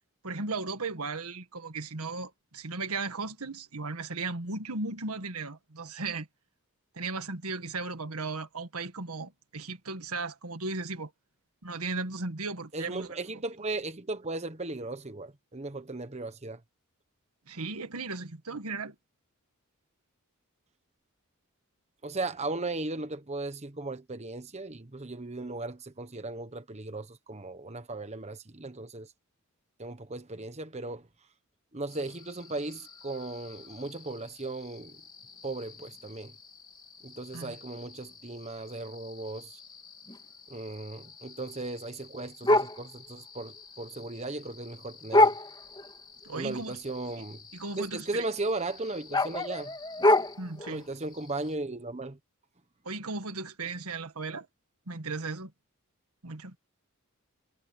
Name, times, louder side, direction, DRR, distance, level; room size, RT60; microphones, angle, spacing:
voice 1, 0.2-6.3 6.9-11.1 11.6-13.2 17.5-19.0 37.3-37.5 46.2-46.8 47.5-48.3 50.4-50.8 52.9-54.5 54.9-55.5 56.2-56.6, right 3 dB, 85° right, 1.8 m, -36 dB
voice 2, 12.7-16.6 22.0-29.1 29.8-31.1 31.7-35.0 35.4-36.3 37.0-39.6 40.5-45.4 46.3-47.4 47.8-49.7 50.7-52.2, right 2 dB, 30° right, 1.2 m, -37 dB
sound 1, 31.9-51.5, left 1 dB, 20° left, 3.1 m, -32 dB
head